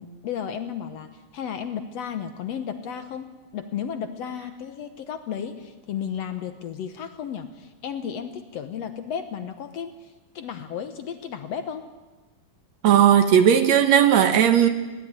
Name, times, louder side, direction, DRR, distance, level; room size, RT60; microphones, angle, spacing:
voice 1, 0.0-3.3 3.5-11.9, left 8 dB, 65° left, 1.7 m, -33 dB
voice 2, 12.8-14.7, right 9 dB, 65° right, 2.0 m, -16 dB
21.0 x 16.5 x 9.6 m
omnidirectional pair, 4.0 m